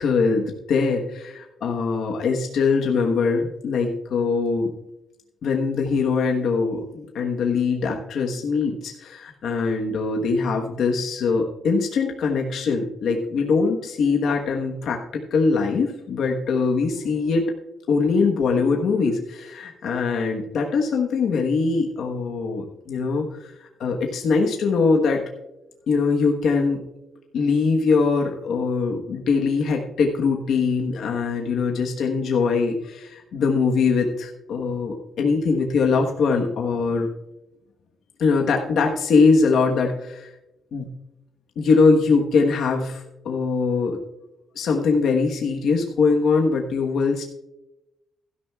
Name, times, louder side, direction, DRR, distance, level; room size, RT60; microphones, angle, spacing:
voice 1, 0.0-4.7 5.4-17.5 17.9-23.5 23.8-25.2 25.9-26.8 27.3-37.1 38.2-40.3 40.7-40.9 41.6-44.0 44.5-47.3, left 4 dB, 70° left, 1 dB, 1.2 m, -22 dB
16.0 x 12.5 x 2.4 m, 0.92 s
cardioid pair, 150°, 0 cm